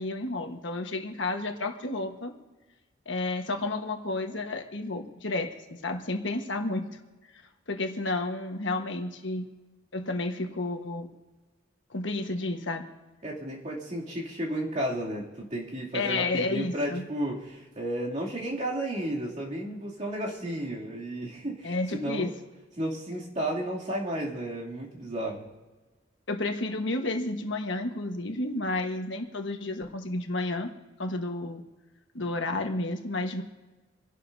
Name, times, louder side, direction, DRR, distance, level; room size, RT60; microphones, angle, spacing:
voice 1, 0.0-2.3 3.0-6.8 7.7-9.5 9.9-11.1 11.9-12.9 15.9-17.1 21.6-22.3 26.3-30.7 31.0-31.6 32.1-33.4, left 2 dB, 75° left, 4 dB, 1.4 m, -31 dB
voice 2, 13.2-22.3 22.8-25.5, right 1 dB, 40° right, -4 dB, 2.8 m, -33 dB
28.0 x 12.0 x 2.7 m, 1.2 s
head